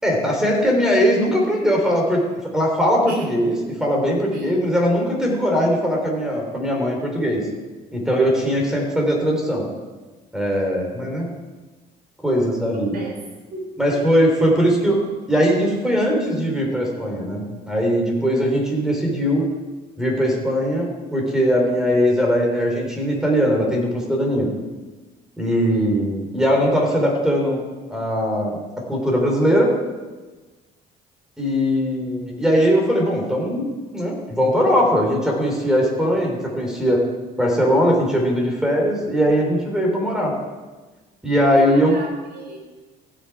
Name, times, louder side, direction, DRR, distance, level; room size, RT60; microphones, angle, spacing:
voice 1, 0.0-2.2 2.5-7.4 7.9-9.7 10.3-11.3 12.2-13.0 13.8-15.0 15.3-19.4 20.0-24.5 25.4-27.6 27.9-28.6 28.9-29.7 31.4-33.7 33.9-37.0 37.4-40.3 41.2-41.9, equal, 5° right, 0 dB, 3.3 m, -20 dB
voice 2, 4.3-4.6 12.7-13.2 13.5-14.0 41.5-42.6, right 2 dB, 60° right, 0 dB, 4.0 m, -36 dB
15.0 x 6.6 x 4.7 m, 1.2 s
cardioid pair, 110°, 17 cm